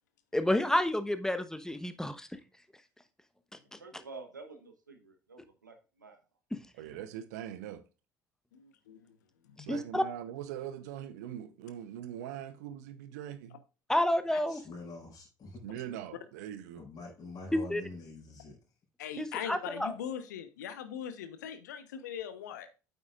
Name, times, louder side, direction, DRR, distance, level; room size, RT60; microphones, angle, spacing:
voice 1, 0.3-2.3 6.5-6.6 9.7-10.0 13.9-14.6 17.5-17.8 19.2-19.9, left 1 dB, 5° left, 1.1 m, -29 dB
voice 2, 3.8-6.2, right 3 dB, 85° right, 1.1 m, -49 dB
voice 3, 6.7-7.8 9.7-13.6 15.6-16.8, right 10 dB, 70° right, 0.7 m, -42 dB
voice 4, 8.5-9.2 9.4-9.6 19.0-22.7, left 8 dB, 75° left, 1.0 m, -40 dB
voice 5, 14.5-15.7 16.7-18.6, left 3 dB, 40° left, 4.8 m, -46 dB
9.1 x 7.9 x 2.4 m
figure-of-eight pair, 60°, 10 cm